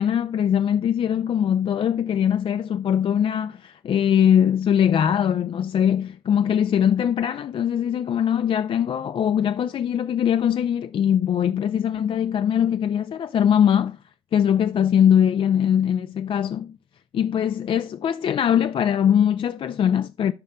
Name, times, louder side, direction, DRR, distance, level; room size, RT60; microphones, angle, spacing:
voice 1, 0.0-14.0 14.3-16.7 17.1-20.3, left 9 dB, 35° left, 0.4 m, -21 dB
11.5 x 5.2 x 2.3 m
hypercardioid pair, 70°, 15 cm